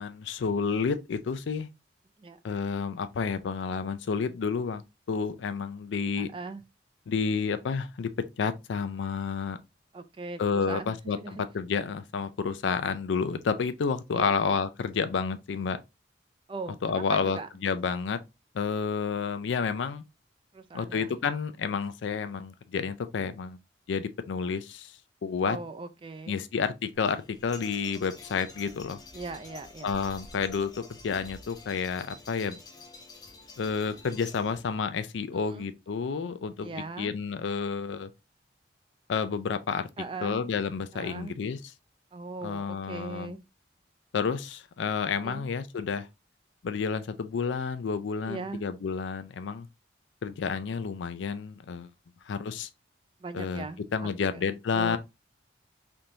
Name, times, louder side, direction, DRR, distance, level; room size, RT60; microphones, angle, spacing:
voice 1, 0.0-1.7 2.4-4.8 5.1-6.3 7.1-8.1 8.4-9.6 10.4-15.8 16.8-18.2 18.5-20.0 20.7-23.6 23.9-24.9 25.2-25.6 26.3-29.0 29.8-32.6 33.6-38.1 39.1-39.9 40.2-41.6 42.4-43.4 44.1-46.1 46.6-49.7 50.2-51.9 52.3-52.7 53.3-53.7 53.9-55.0, left 5 dB, 85° left, 0.4 m, -30 dB
voice 2, 6.2-6.6 9.9-11.4 14.1-14.4 16.5-17.5 20.5-21.2 25.4-26.4 29.1-29.9 35.5-35.7 36.6-37.1 40.0-40.4 40.9-41.3 42.1-43.4 45.2-45.5 48.3-48.6 53.2-54.5 54.7-55.0, right 3 dB, 30° right, 0.3 m, -39 dB
sound 1, 26.9-34.7, left 3 dB, 20° left, 0.6 m, -48 dB
3.4 x 2.6 x 2.8 m
head